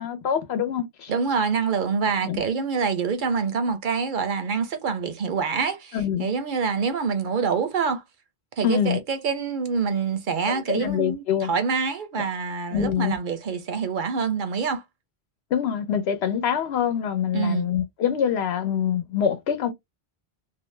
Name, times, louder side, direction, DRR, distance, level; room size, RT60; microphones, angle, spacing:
voice 1, 0.0-1.1 2.2-2.4 5.9-6.3 8.6-9.0 10.7-11.5 12.7-13.2 15.5-19.7, left 8 dB, 85° left, 0.9 m, -25 dB
voice 2, 1.1-8.0 8.6-14.8 17.3-17.7, right 5 dB, 60° right, 0.7 m, -26 dB
2.6 x 2.0 x 3.1 m
omnidirectional pair, 1.0 m